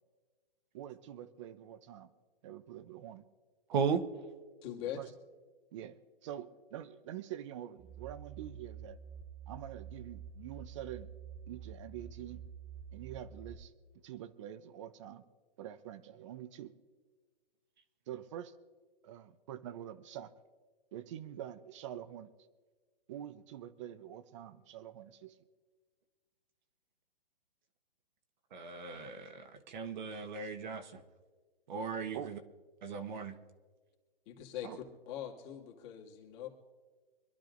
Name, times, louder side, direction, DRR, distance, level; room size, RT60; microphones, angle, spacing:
voice 1, 0.7-2.1 2.4-3.2 5.0-5.1 5.7-6.0 6.2-9.0 9.5-11.1 11.5-12.4 12.9-13.7 14.0-15.2 15.6-16.7 18.1-18.5 19.0-20.3 20.9-22.3 23.1-25.4 32.1-32.3 34.6-34.8, right 11 dB, 30° right, 13 dB, 0.7 m, -46 dB
voice 2, 3.7-4.0 28.5-31.0 31.7-32.4 32.8-33.4, right 6 dB, 50° right, 6 dB, 1.3 m, -36 dB
voice 3, 4.6-5.0 34.3-36.5, left 11 dB, 30° left, -1 dB, 2.2 m, -42 dB
sound 1, 7.8-13.5, right 7 dB, 75° right, 2.6 m, -48 dB
25.5 x 11.5 x 2.6 m, 1.4 s
hypercardioid pair, 150°, 30 cm